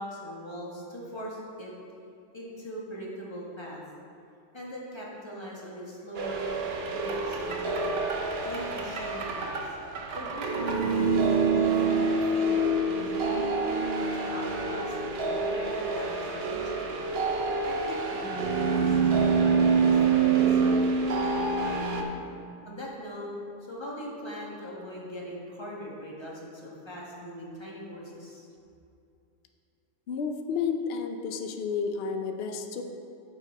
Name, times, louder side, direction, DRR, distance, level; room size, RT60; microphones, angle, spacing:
voice 1, 0.0-1.7 2.3-3.8 4.5-6.6 6.9-8.0 8.4-9.6 10.1-13.5 14.0-17.1 17.6-20.8 21.2-22.1 22.6-23.3 23.7-28.5, equal, 20° left, -5 dB, 1.3 m, -40 dB
sound 1, 6.2-22.0, right 4 dB, 55° right, 0.9 m, -26 dB
voice 2, 30.1-32.8, left 5 dB, 60° left, 5 dB, 0.8 m, -31 dB
7.5 x 6.4 x 4.8 m, 2.6 s
omnidirectional pair, 1.3 m